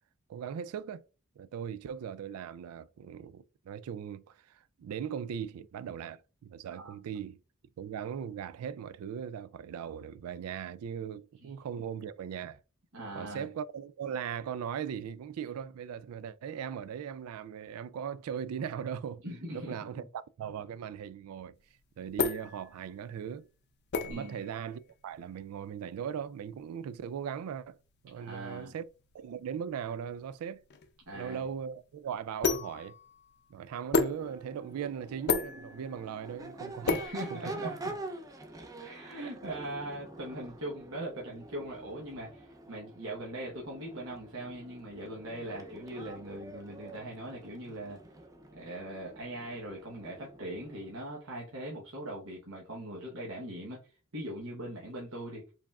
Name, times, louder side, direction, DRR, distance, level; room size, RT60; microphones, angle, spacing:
voice 1, 0.3-1.0 1.4-7.4 7.8-12.6 13.1-19.2 19.5-20.0 20.4-21.6 22.0-23.5 24.0-27.8 28.0-28.9 29.1-30.6 31.1-32.9 33.5-36.9 37.3-37.7 39.2-39.3, right 8 dB, 85° right, 0.3 m, -39 dB
voice 2, 12.9-13.5 19.2-20.1 24.1-24.4 28.1-28.7 31.1-31.5 36.8-37.8 38.8-48.0 48.5-53.8 54.1-55.4, right 1 dB, 70° right, 1.1 m, -41 dB
sound 1, 21.6-38.0, left 4 dB, 50° left, 0.5 m, -36 dB
Crowd / Race car auto racing / Accelerating revving vroom, 34.0-51.0, right 2 dB, 15° right, 0.5 m, -46 dB
4.8 x 3.4 x 2.3 m
head